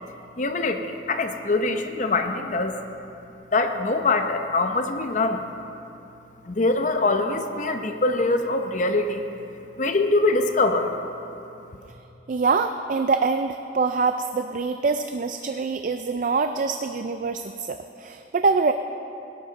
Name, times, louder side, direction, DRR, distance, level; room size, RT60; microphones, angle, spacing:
voice 1, 0.4-0.8 1.1-2.7 3.5-5.4 6.5-9.2 9.8-11.0, left 2 dB, 40° left, 6 dB, 0.8 m, -23 dB
voice 2, 12.3-18.7, right 4 dB, 45° right, 8 dB, 0.4 m, -24 dB
17.5 x 11.0 x 4.0 m, 2.8 s
head